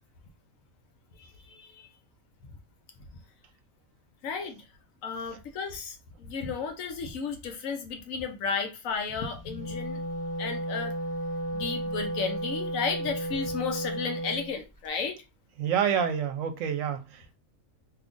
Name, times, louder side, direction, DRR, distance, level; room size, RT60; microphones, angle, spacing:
voice 1, 1.2-1.9 4.2-4.6 5.0-10.0 10.4-10.9 11.5-15.2, left 5 dB, 80° left, 1.1 m, -33 dB
Wind instrument woodwind instrument, 9.4-14.5, right 1 dB, 15° left, 0.7 m, -33 dB
voice 2, 15.6-17.3, right 8 dB, 80° right, 1.0 m, -28 dB
3.0 x 2.5 x 3.6 m
omnidirectional pair, 1.4 m